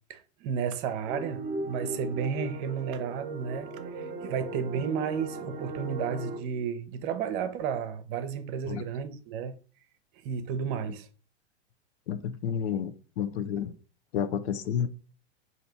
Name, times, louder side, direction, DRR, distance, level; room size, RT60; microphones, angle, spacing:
voice 1, 0.1-9.5 10.2-11.1, right 7 dB, 50° right, 0.8 m, -32 dB
sound 1, 1.1-6.4, right 2 dB, 30° right, 1.2 m, -37 dB
voice 2, 12.1-13.7 14.1-14.9, left 8 dB, 75° left, 0.8 m, -30 dB
4.0 x 2.9 x 4.4 m
hypercardioid pair, 125°, 33 cm